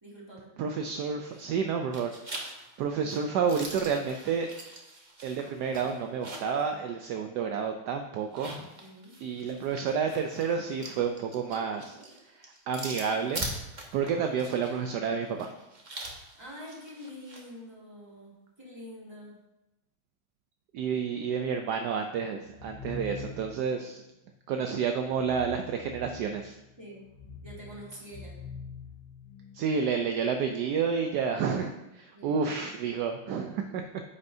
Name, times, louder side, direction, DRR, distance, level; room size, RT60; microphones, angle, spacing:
voice 1, 0.0-0.5 8.7-9.2 13.9-14.1 16.3-19.3 26.8-27.0 27.4-28.4 32.1-32.4, equal, 10° right, -6 dB, 2.7 m, -46 dB
voice 2, 0.6-2.5 2.8-4.5 5.2-8.5 9.2-12.0 12.3-13.5 13.9-15.5 20.7-24.0 24.5-26.6 29.5-33.8, right 6 dB, 75° right, 5 dB, 1.0 m, -30 dB
sound 1, 1.2-1.6 1.9-6.6 7.0-7.1 8.2-17.5, right 2 dB, 30° right, 0.9 m, -42 dB
sound 2, 22.5-23.7 25.1-26.5 27.0-29.6, left 4 dB, 85° left, 1.9 m, -44 dB
9.6 x 8.6 x 2.7 m, 0.95 s
omnidirectional pair, 2.2 m